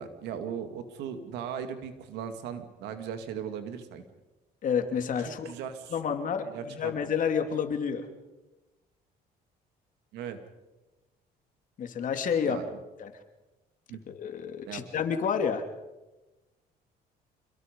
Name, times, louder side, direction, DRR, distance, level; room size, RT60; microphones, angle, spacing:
voice 1, 0.0-4.0 5.2-6.1 6.5-7.1 10.1-10.4 12.4-12.6 13.9-14.0 14.6-14.8, right 8 dB, 85° right, 8 dB, 2.4 m, -38 dB
voice 2, 4.6-5.5 5.9-8.1 11.8-12.6 13.0-13.1 14.1-15.6, left 7 dB, 50° left, 6 dB, 2.7 m, -29 dB
26.5 x 22.0 x 5.4 m, 1.1 s
cardioid pair, 110°, 17 cm